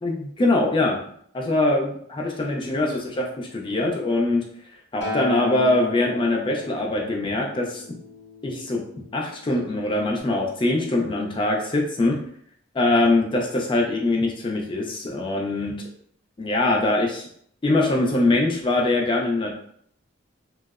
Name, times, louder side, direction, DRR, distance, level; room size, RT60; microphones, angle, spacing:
voice 1, 0.0-1.0 1.3-4.4 4.9-7.8 8.4-8.8 9.1-12.2 12.7-15.7 16.4-17.2 17.6-19.5, left 2 dB, 25° left, 0 dB, 0.4 m, -23 dB
Acoustic guitar, 5.0-9.3 10.1-10.2, left 3 dB, 60° left, 0.8 m, -34 dB
2.6 x 2.0 x 2.3 m, 0.64 s
head